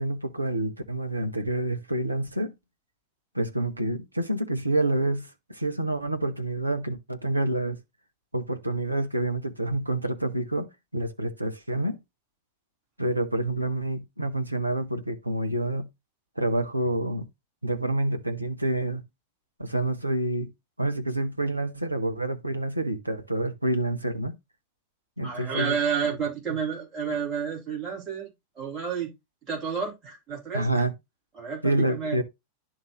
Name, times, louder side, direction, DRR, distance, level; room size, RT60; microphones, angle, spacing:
voice 1, 0.0-2.5 3.3-7.8 8.3-12.0 13.0-15.9 16.4-17.3 17.6-19.0 19.6-20.5 20.8-24.4 25.2-25.7 30.5-30.9 31.6-32.2, right 1 dB, 85° right, 0.8 m, -28 dB
voice 2, 25.2-28.3 28.6-29.1 29.5-30.7 31.4-32.2, right 6 dB, 25° right, 4.1 m, -30 dB
11.0 x 3.7 x 3.2 m
figure-of-eight pair, 90°, 0 cm